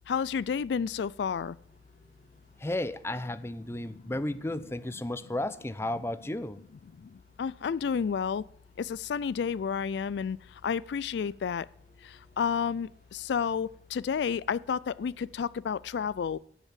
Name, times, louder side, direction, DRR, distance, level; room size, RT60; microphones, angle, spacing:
voice 1, 0.1-1.6 3.8-4.0 7.4-8.4 8.8-10.4 10.6-11.7 12.0-16.4, left 6 dB, 75° left, 0.3 m, -31 dB
sound 1, 1.5-15.5, equal, 45° left, 5.7 m, -64 dB
voice 2, 2.6-6.6, left 1 dB, 15° left, 0.6 m, -33 dB
10.0 x 7.3 x 7.3 m
head